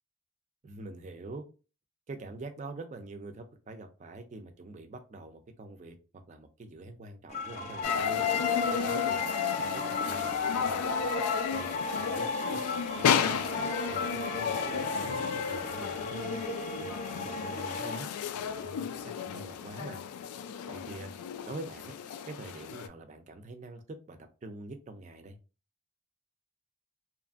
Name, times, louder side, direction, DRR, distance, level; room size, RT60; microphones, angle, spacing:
voice 1, 0.6-1.5 2.1-6.0 6.3-8.2 8.7-11.1 11.5-13.5 13.9-16.4 16.8-18.1 18.4-20.0 20.7-21.1 21.4-21.9 22.3-25.4, right 2 dB, 30° right, 6 dB, 0.3 m, -45 dB
sound 1, 7.3-18.0, left 2 dB, 30° left, 0.5 m, -36 dB
sound 2, 7.8-22.9, left 8 dB, 90° left, 0.3 m, -33 dB
2.9 x 2.4 x 2.3 m, 0.33 s
head